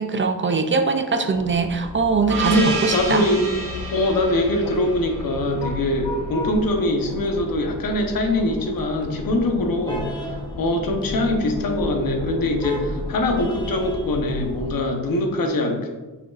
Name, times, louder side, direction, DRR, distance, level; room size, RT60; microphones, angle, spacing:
voice 1, 0.0-3.3, right 4 dB, 35° right, 7 dB, 0.4 m, -22 dB
sound 1, 1.3-14.8, left 1 dB, 10° left, 0.8 m, -34 dB
Gong, 2.3-6.6, right 3 dB, 65° right, 1.7 m, -30 dB
voice 2, 2.5-3.4 3.9-15.9, left 1 dB, 75° left, 4 dB, 1.0 m, -23 dB
8.1 x 4.9 x 2.4 m, 1.2 s
wide cardioid pair, 140°, 35 cm